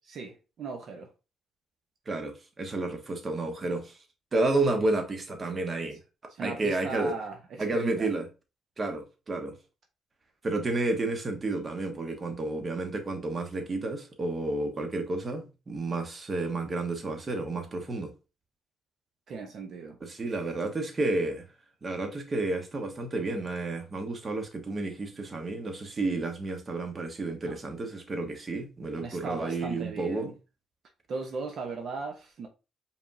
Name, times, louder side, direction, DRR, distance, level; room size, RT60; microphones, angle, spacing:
voice 1, 0.1-1.1 6.3-7.4 7.7-8.1 19.3-20.0 27.5-27.6 29.0-30.3 31.1-32.5, right 4 dB, 60° right, 0.9 m, -37 dB
voice 2, 2.1-4.0 4.3-6.0 6.4-7.2 7.6-8.3 8.8-9.5 10.4-18.1 20.0-21.4 21.8-30.3, right 2 dB, 35° right, 1.2 m, -31 dB
5.0 x 3.5 x 2.6 m
cardioid pair, 90°, 0 cm